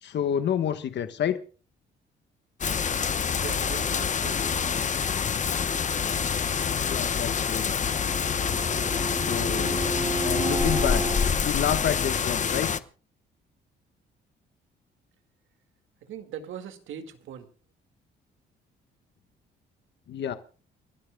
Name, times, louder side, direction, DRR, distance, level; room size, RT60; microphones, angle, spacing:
voice 1, 0.0-1.4 6.8-7.7 9.1-9.8 10.2-11.0 11.3-12.7 20.1-20.4, left 9 dB, 60° left, 9 dB, 1.2 m, -29 dB
sound 1, 2.6-12.8, left 6 dB, 40° left, 0.9 m, -27 dB
voice 2, 3.4-4.9 16.0-17.5, right 8 dB, 80° right, 8 dB, 2.0 m, -40 dB
Bowed string instrument, 7.7-11.4, right 2 dB, 25° right, 1.5 m, -32 dB
29.5 x 12.5 x 2.3 m, 0.38 s
cardioid pair, 90°, 20 cm